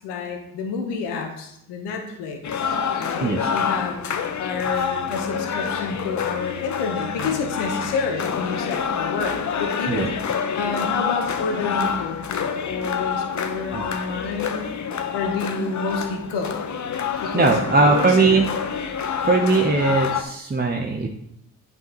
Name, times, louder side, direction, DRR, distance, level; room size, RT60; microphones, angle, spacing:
voice 1, 0.0-2.7 3.0-10.2 10.5-14.7 15.1-16.5 17.2-17.5 17.9-18.4, left 4 dB, 85° left, 3 dB, 1.3 m, -29 dB
sound 1, 2.4-20.2, left 7 dB, 45° left, 0.8 m, -27 dB
voice 2, 2.9-3.5 4.8-4.9 9.9-10.1 13.7-13.8 17.2-18.5 19.2-21.1, right 3 dB, 25° right, 1 dB, 0.9 m, -20 dB
sound 2, 13.4-13.6, left 2 dB, 80° right, 1.5 m, -44 dB
9.1 x 5.4 x 3.1 m, 0.78 s
hypercardioid pair, 45°, 41 cm